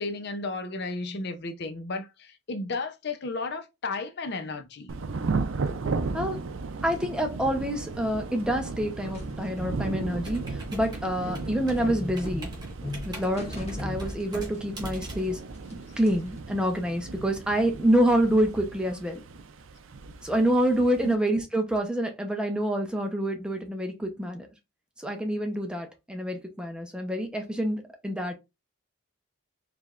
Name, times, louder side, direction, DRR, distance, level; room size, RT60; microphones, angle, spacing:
voice 1, 0.0-4.9 21.0-21.1, left 3 dB, 50° left, 0.5 m, -33 dB
Thunder / Rain, 4.9-21.1, right 4 dB, 70° right, 0.5 m, -36 dB
voice 2, 5.8-6.4 6.8-12.5 13.1-15.4 16.0-19.2 20.2-24.5 25.0-28.3, equal, 5° right, 0.7 m, -27 dB
sound 1, 9.1-14.6 14.8-16.4, equal, 30° left, 1.3 m, -39 dB
Computer keyboard, 10.2-16.2, equal, 20° right, 1.3 m, -41 dB
4.5 x 3.4 x 2.4 m
head